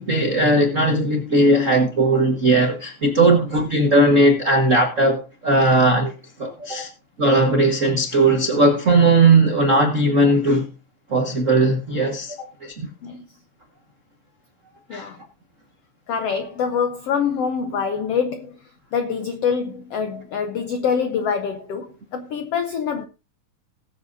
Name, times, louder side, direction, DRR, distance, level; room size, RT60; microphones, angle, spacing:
voice 1, 0.0-6.1 6.4-6.9 7.2-10.7 11.1-12.4 12.6-12.9 14.9-15.1, right 2 dB, 85° right, 0.7 m, -18 dB
voice 2, 16.1-18.6 18.9-23.0, left 6 dB, 85° left, 1.3 m, -25 dB
20.0 x 7.7 x 2.7 m
omnidirectional pair, 4.0 m